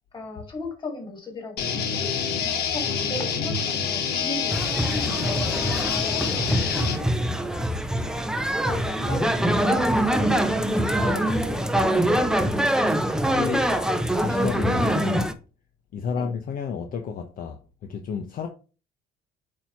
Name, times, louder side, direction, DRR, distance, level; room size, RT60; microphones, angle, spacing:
voice 1, 0.1-7.1 8.6-12.2 16.1-16.3, left 2 dB, 30° left, 2.8 m, -37 dB
sound 1, 1.6-7.0, left 6 dB, 75° left, 1.5 m, -27 dB
sound 2, 4.5-15.3, right 1 dB, 5° right, 0.6 m, -24 dB
voice 2, 13.1-13.8 14.2-15.3 15.9-18.5, left 6 dB, 55° left, 0.8 m, -31 dB
8.7 x 2.9 x 4.5 m
cardioid pair, 110°, 17 cm